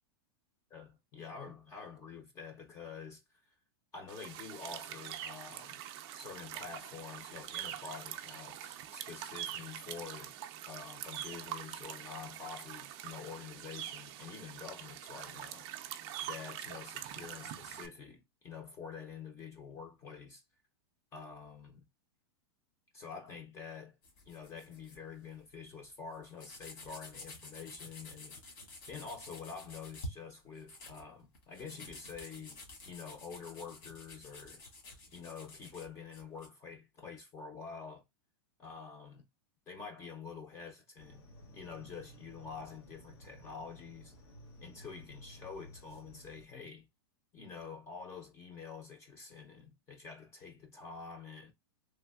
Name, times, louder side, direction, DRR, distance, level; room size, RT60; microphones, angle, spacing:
voice 1, 0.7-3.4 3.9-5.8 6.1-10.3 10.7-15.7 16.2-20.4 21.1-21.8 22.9-24.0 24.3-28.4 28.9-34.6 35.1-38.0 38.6-39.2 39.7-41.2 41.5-44.1 44.6-46.9 47.3-51.5, left 5 dB, 20° left, 0.5 m, -47 dB
sound 1, 4.1-17.9, right 11 dB, 30° right, 0.4 m, -44 dB
sound 2, 24.0-25.0 25.3-25.5 25.8-25.9 26.1-30.1 30.5-36.5, left 1 dB, 55° left, 1.5 m, -50 dB
sound 3, 41.0-46.5, equal, 85° left, 1.0 m, -55 dB
3.3 x 2.6 x 2.3 m
supercardioid pair, 160°, 13 cm